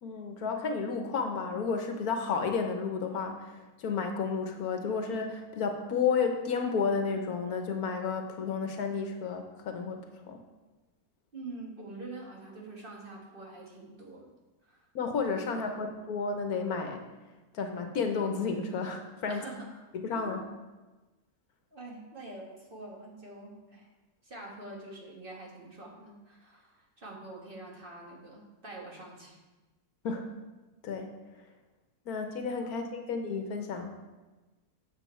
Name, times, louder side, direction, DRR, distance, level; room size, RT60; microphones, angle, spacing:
voice 1, 0.0-10.4 14.9-17.0 17.5-19.4 19.9-20.4 30.0-30.2 30.8-31.1 32.1-33.9, left 5 dB, 75° left, 5 dB, 1.4 m, -32 dB
voice 2, 11.3-14.3 14.7-14.9 15.4-15.9 19.3-20.4 21.7-23.9 24.2-29.4 32.6-32.8, right 2 dB, 35° right, -3 dB, 1.8 m, -46 dB
8.2 x 7.0 x 4.5 m, 1.2 s
omnidirectional pair, 1.6 m